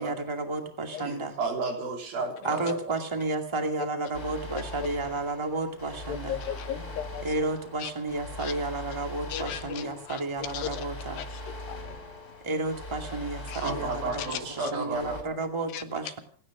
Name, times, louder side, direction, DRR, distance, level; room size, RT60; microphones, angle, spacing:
voice 1, 0.0-1.4 2.4-6.4 7.2-11.2 12.4-16.2, right 2 dB, 10° right, 5 dB, 1.4 m, -32 dB
voice 2, 1.0-2.9 13.6-15.3, right 3 dB, 80° right, 2 dB, 5.1 m, -32 dB
sound 1, 4.1-15.2, left 1 dB, 20° left, 3.2 m, -41 dB
voice 3, 6.1-7.3 7.8-7.9 8.4-8.5 9.3-10.9 11.2-12.5 13.5-13.9 14.2-14.7 15.7-15.8, left 10 dB, 85° left, 10 dB, 2.9 m, -37 dB
28.5 x 9.8 x 5.0 m, 0.43 s
omnidirectional pair, 4.1 m